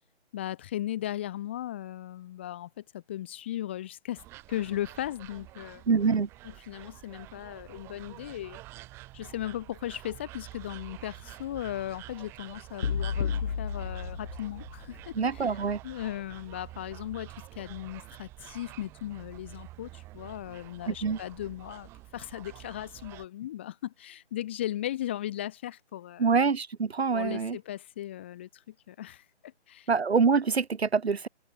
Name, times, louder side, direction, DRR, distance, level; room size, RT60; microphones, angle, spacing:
voice 1, 0.3-4.2 4.5-5.8 6.4-8.6 9.1-15.5 15.8-26.4 27.1-29.9, left 13 dB, 10° left, 0.9 m, -37 dB
sound 1, 4.2-23.3, right 18 dB, 5° right, 1.2 m, -48 dB
voice 2, 5.9-6.3 15.1-15.8 20.9-21.2 26.2-27.6 29.9-31.3, right 5 dB, 65° right, 1.3 m, -25 dB
sound 2, 12.8-15.1, left 7 dB, 75° left, 0.7 m, -32 dB
figure-of-eight pair, 155°, 35 cm